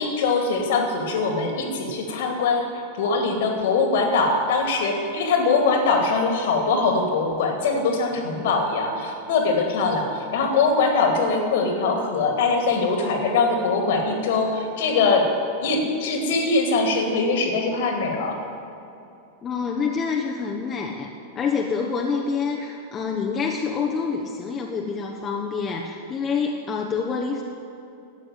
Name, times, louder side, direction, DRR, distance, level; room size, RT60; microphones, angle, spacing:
voice 1, 0.0-15.3 15.6-18.4, left 4 dB, 55° left, 3 dB, 2.4 m, -22 dB
voice 2, 19.4-21.1 21.3-27.4, left 5 dB, 25° left, 1 dB, 1.1 m, -27 dB
13.0 x 8.5 x 9.0 m, 2.7 s
figure-of-eight pair, 90°, 0 cm